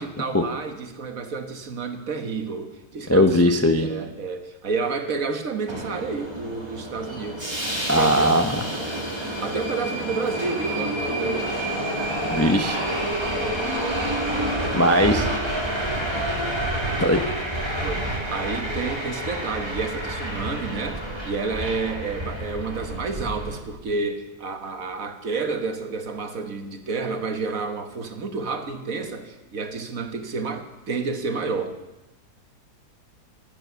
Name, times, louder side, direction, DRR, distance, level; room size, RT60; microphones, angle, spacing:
voice 1, 0.0-7.5 7.9-8.3 8.7-9.0 9.4-11.6 13.3-13.6 14.8-15.3 17.8-31.8, right 4 dB, 60° right, 7 dB, 1.6 m, -30 dB
voice 2, 3.1-3.9 7.9-8.6 12.3-12.8 14.7-15.3 17.0-17.2, equal, 15° left, 6 dB, 0.5 m, -19 dB
Subway metro underground, 5.7-23.6, right 1 dB, 15° right, 2.4 m, -28 dB
15.5 x 11.0 x 6.9 m, 1.0 s
omnidirectional pair, 1.7 m